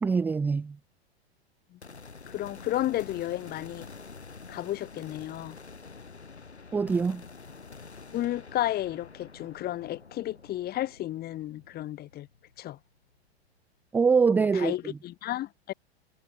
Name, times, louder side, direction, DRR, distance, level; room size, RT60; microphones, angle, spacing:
voice 1, 0.0-0.8 6.7-7.2 13.9-14.9, right 5 dB, 5° right, 0.4 m, -24 dB
sound 1, 1.8-13.2, left 4 dB, 85° left, 5.1 m, -48 dB
voice 2, 2.3-3.9 4.5-5.6 8.1-12.3 12.6-12.8 14.3-15.7, left 14 dB, 30° left, 2.3 m, -32 dB
figure-of-eight pair, 105°, 33 cm